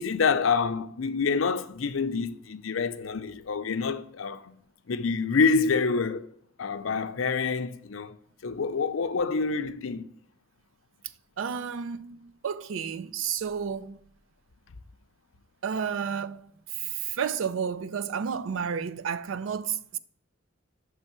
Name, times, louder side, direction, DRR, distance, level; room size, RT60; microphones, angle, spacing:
voice 1, 0.0-4.6 4.9-6.3 6.6-8.2 8.4-10.1, left 5 dB, 85° left, 0.6 m, -27 dB
voice 2, 11.4-14.0 15.6-16.4 16.8-20.0, right 7 dB, 80° right, 0.4 m, -31 dB
6.5 x 3.4 x 5.9 m
head